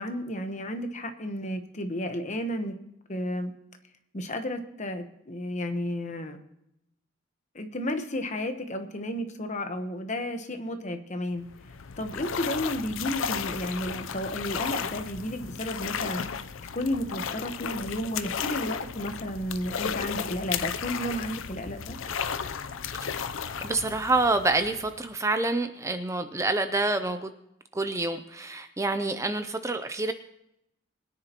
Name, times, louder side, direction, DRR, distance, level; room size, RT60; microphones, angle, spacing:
voice 1, 0.0-2.8 3.1-3.5 4.1-6.4 7.5-11.5 12.0-16.4 16.7-22.0, left 1 dB, 35° left, 7 dB, 1.1 m, -32 dB
sound 1, 11.4-25.1, left 7 dB, 70° left, 0.6 m, -34 dB
voice 2, 23.0-23.4 23.6-27.3 27.7-30.1, right 2 dB, 15° right, 9 dB, 0.5 m, -27 dB
23.0 x 10.0 x 2.9 m, 0.82 s
head